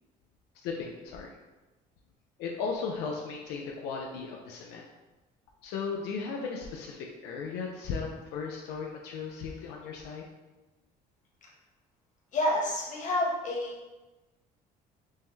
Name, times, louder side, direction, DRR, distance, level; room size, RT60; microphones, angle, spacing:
voice 1, 0.6-1.3 2.4-4.8 5.6-10.2, left 5 dB, 90° left, -1 dB, 0.5 m, -36 dB
voice 2, 12.3-13.9, left 1 dB, 50° left, -3 dB, 1.2 m, -29 dB
5.4 x 2.1 x 3.1 m, 1.1 s
cardioid pair, 110°, 17 cm